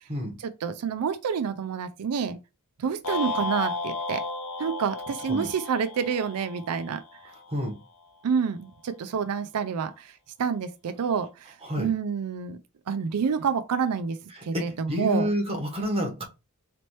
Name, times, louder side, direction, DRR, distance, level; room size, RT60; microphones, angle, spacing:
voice 1, 0.4-2.4 2.8-4.2 4.6-7.0 8.2-12.6 12.9-15.3, right 6 dB, 90° right, 0.4 m, -28 dB
sound 1, 3.0-7.4, left 3 dB, 85° left, 0.9 m, -33 dB
voice 2, 14.5-16.2, equal, 25° right, 1.2 m, -28 dB
4.1 x 3.0 x 3.1 m
head